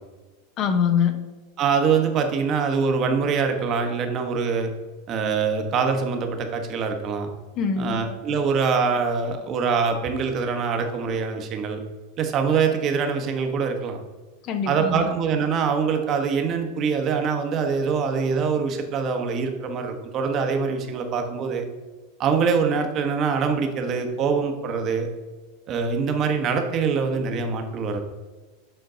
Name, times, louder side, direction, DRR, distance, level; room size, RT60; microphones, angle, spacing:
voice 1, 0.6-1.3 7.6-8.2 14.4-15.1, left 6 dB, 45° left, 8 dB, 0.7 m, -24 dB
voice 2, 1.6-4.7 5.1-7.3 7.8-11.8 12.2-14.0 14.7-21.6 22.2-25.1 25.7-28.0, right 5 dB, 40° right, 5 dB, 1.0 m, -24 dB
7.9 x 3.8 x 3.9 m, 1.2 s
hypercardioid pair, 110°, 0 cm